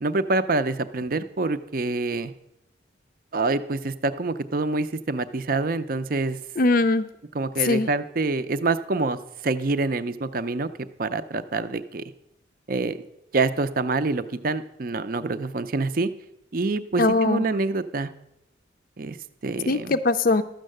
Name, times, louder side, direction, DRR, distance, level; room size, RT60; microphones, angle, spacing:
voice 1, 0.0-2.3 3.3-6.4 7.3-9.2 9.4-10.7 11.0-12.0 12.7-13.0 13.3-16.1 16.5-18.1 19.0-19.2 19.4-20.0, right 3 dB, 45° right, 12 dB, 0.5 m, -26 dB
voice 2, 6.6-7.1 7.6-7.9 17.0-17.4 19.7-20.4, left 2 dB, 45° left, 9 dB, 0.4 m, -21 dB
12.5 x 6.4 x 7.7 m, 0.85 s
head